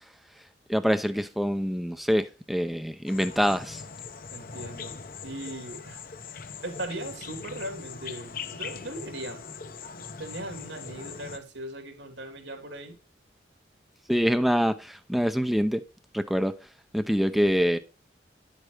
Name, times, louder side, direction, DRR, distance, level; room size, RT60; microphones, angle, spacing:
voice 1, 0.7-3.8 14.1-15.8 16.1-17.8, equal, ahead, 0.5 m, -25 dB
sound 1, 3.1-11.4, left 5 dB, 50° left, 0.8 m, -41 dB
voice 2, 4.3-6.0 6.6-9.4 10.2-13.0, right 1 dB, 90° right, 3.2 m, -39 dB
10.5 x 8.1 x 3.3 m
head